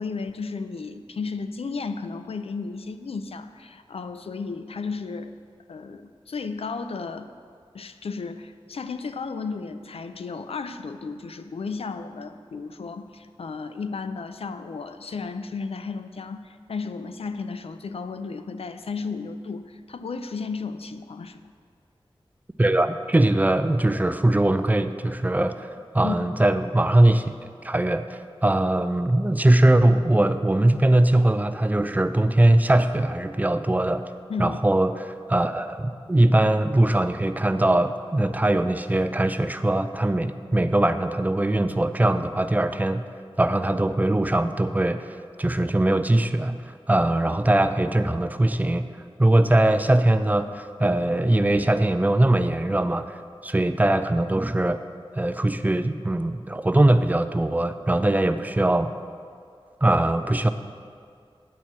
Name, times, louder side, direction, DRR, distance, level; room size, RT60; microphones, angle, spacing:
voice 1, 0.0-5.3 5.7-7.3 7.7-21.5 26.0-26.3 34.3-34.6, left 4 dB, 80° left, 9 dB, 0.4 m, -34 dB
voice 2, 22.6-25.7 25.9-27.3 27.6-34.0 34.4-43.0 43.4-48.9 49.2-53.1 53.4-54.8 55.1-58.9 59.8-60.5, right 1 dB, 15° right, 10 dB, 0.4 m, -21 dB
9.3 x 4.5 x 7.3 m, 2.2 s
wide cardioid pair, 70°, 10 cm